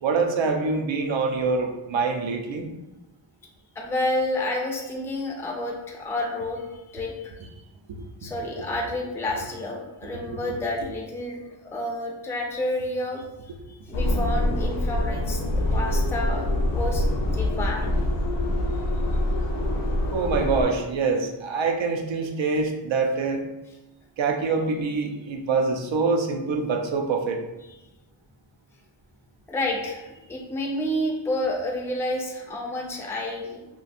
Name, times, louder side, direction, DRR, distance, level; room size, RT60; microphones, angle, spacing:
voice 1, 0.0-2.7 7.9-8.3 10.5-10.6 20.1-23.4 24.2-27.4, right 4 dB, 80° right, 3 dB, 0.6 m, -25 dB
voice 2, 3.8-7.3 8.2-13.2 13.7-17.0 17.3-18.0 29.5-33.7, left 1 dB, 5° left, 0 dB, 0.3 m, -30 dB
sound 1, 13.9-20.6, left 1 dB, 65° left, 0.6 m, -25 dB
2.5 x 2.3 x 4.0 m, 1.0 s
wide cardioid pair, 130°, 44 cm